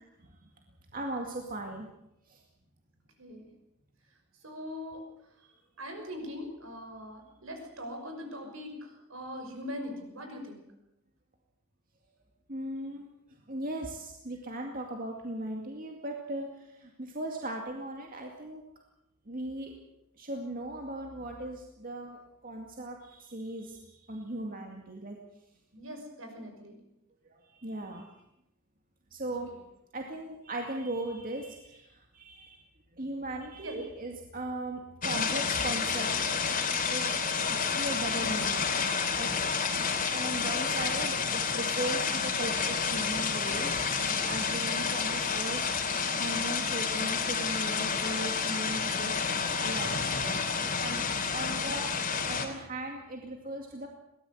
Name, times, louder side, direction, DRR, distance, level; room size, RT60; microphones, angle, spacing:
voice 1, 0.9-1.9 2.3-2.4 12.5-13.1 13.5-18.6 19.3-19.7 20.2-25.2 27.5-28.1 29.1-29.5 29.9-32.6 33.0-36.1 36.9-37.1 37.5-38.7 39.2-39.3 40.1-43.8 44.1-49.2 49.6-51.9 52.3-53.9, right 1 dB, 40° right, 2 dB, 2.2 m, -38 dB
voice 2, 3.2-3.5 4.4-5.0 5.8-10.6 25.7-26.8 33.6-33.8, left 1 dB, 70° right, 4 dB, 6.0 m, -41 dB
sound 1, 35.0-52.5, left 5 dB, 40° left, 3.3 m, -30 dB
22.5 x 18.0 x 8.0 m, 0.88 s
head